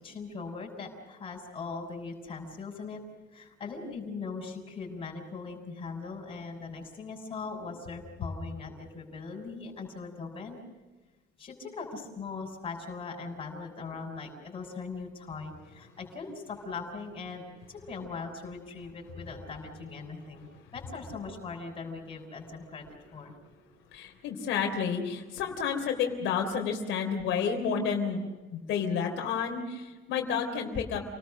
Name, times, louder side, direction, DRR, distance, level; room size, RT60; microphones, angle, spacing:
voice 1, 0.0-3.0 3.3-10.6 11.4-23.3, left 4 dB, 30° left, 0 dB, 6.2 m, -40 dB
voice 2, 23.9-28.2 28.5-31.0, left 6 dB, 85° left, 2 dB, 3.5 m, -30 dB
29.5 x 19.0 x 6.4 m, 1.2 s
cardioid pair, 170°, 19 cm